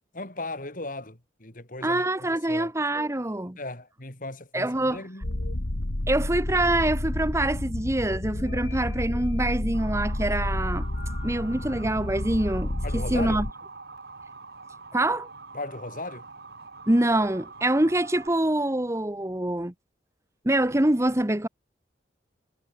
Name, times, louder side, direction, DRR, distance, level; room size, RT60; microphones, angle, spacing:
voice 1, 0.1-2.7 3.6-5.3 12.8-13.4 15.5-16.3, left 2 dB, 50° left, 4.9 m, -37 dB
voice 2, 1.8-3.6 4.5-5.0 6.1-10.9 11.2-13.5 14.9-15.3 16.9-19.7 20.4-21.5, right 1 dB, 15° right, 1.2 m, -25 dB
sound 1, 5.2-13.5, left 1 dB, 80° left, 1.9 m, -30 dB
Motor vehicle (road) / Siren, 9.7-18.3, right 3 dB, 65° right, 3.5 m, -45 dB
head